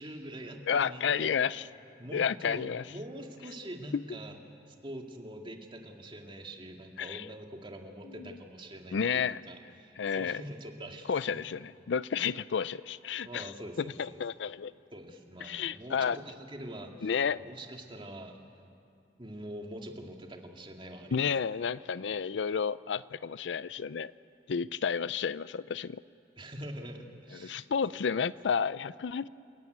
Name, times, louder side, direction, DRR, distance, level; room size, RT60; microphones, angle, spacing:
voice 1, 0.0-1.5 2.0-4.4 4.7-11.4 13.2-14.2 14.9-17.1 17.4-18.4 19.2-21.2 26.4-27.7 27.9-28.1, right 1 dB, 30° right, 3 dB, 2.1 m, -44 dB
voice 2, 0.7-1.6 2.1-2.9 7.0-7.2 8.2-8.3 8.9-9.4 10.0-10.4 11.1-13.5 13.8-14.7 15.4-16.2 17.0-17.4 21.1-24.1 24.5-26.0 27.4-29.3, left 6 dB, 80° left, 18 dB, 0.5 m, -31 dB
28.5 x 15.0 x 9.4 m, 2.5 s
head